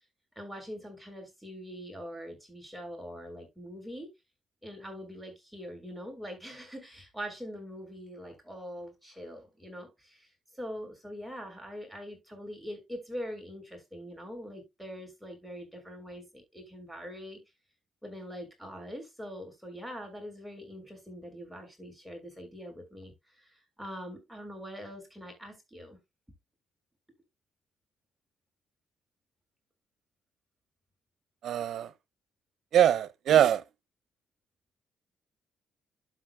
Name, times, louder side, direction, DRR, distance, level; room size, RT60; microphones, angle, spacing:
voice 1, 0.4-4.1 4.6-10.3 10.6-17.4 18.0-23.5 23.8-26.0, equal, ahead, 6.0 m, -43 dB
voice 2, 31.4-31.9 32.7-33.6, right 10 dB, 70° right, 1.0 m, -23 dB
12.5 x 5.7 x 2.2 m
cardioid pair, 90°, 0 cm